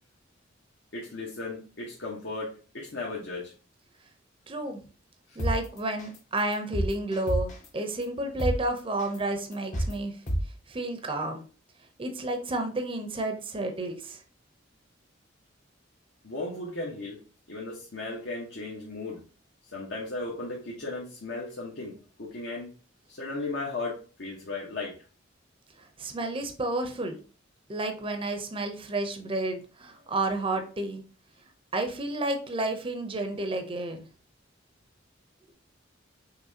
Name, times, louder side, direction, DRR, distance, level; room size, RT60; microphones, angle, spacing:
voice 1, 0.9-3.5 16.2-17.2 17.5-19.2 19.7-21.9 22.2-22.7 23.1-24.9, left 2 dB, 65° left, -4 dB, 1.1 m, -36 dB
voice 2, 4.5-4.8 5.4-10.2 10.7-11.5 12.0-14.2 25.8-27.1 27.7-31.0 31.7-34.1, right 2 dB, 25° right, 5 dB, 0.6 m, -31 dB
sound 1, 5.4-5.6 6.0-6.2 6.5-7.7 8.0-8.1 8.4-8.6 9.0-9.2 9.5-9.9 10.3-10.4, equal, 40° left, 0.9 m, -27 dB
5.6 x 3.1 x 2.8 m, 0.37 s
head